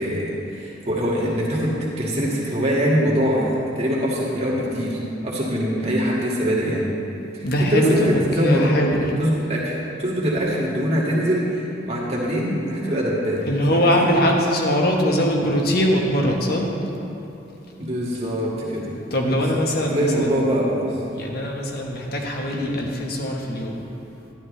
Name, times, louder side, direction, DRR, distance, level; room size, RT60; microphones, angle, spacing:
voice 1, 0.0-6.8 7.3-9.7 10.0-13.4 13.7-14.1 17.8-18.9 19.3-21.0 22.5-22.8, equal, 35° right, -5 dB, 2.0 m, -23 dB
voice 2, 7.4-8.1 8.4-9.0 13.5-16.7 19.1-20.3 21.1-23.8, equal, 55° left, 0 dB, 1.3 m, -21 dB
12.0 x 11.5 x 3.3 m, 2.9 s
head